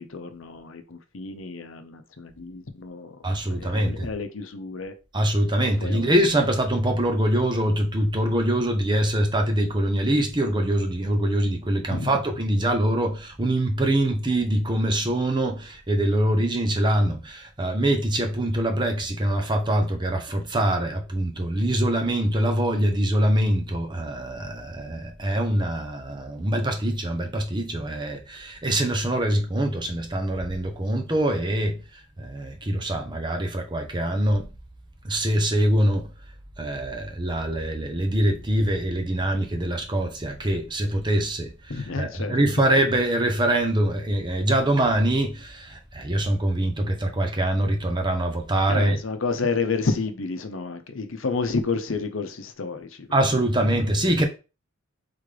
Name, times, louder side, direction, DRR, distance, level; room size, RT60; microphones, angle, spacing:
voice 1, 0.0-3.2 3.5-4.9 5.8-6.1 11.9-12.1 41.7-42.3 48.7-53.1 54.1-54.3, left 4 dB, 75° left, 0.8 m, -30 dB
voice 2, 3.2-4.1 5.1-34.5 35.0-36.1 36.6-49.0 53.1-54.3, right 1 dB, 20° right, 0.8 m, -24 dB
3.8 x 3.7 x 3.3 m
head